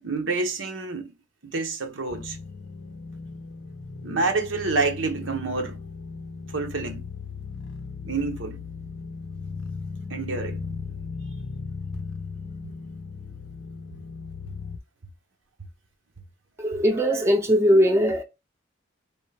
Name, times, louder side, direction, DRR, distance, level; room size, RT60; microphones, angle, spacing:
voice 1, 0.0-1.1 1.4-2.4 4.0-5.8 6.5-7.0 8.0-8.6 10.1-10.6, right 3 dB, 85° right, 0.9 m, -28 dB
sound 1, 2.1-14.8, left 4 dB, 75° left, 0.6 m, -37 dB
voice 2, 16.6-18.2, equal, 15° right, 0.6 m, -20 dB
3.6 x 3.0 x 3.3 m
head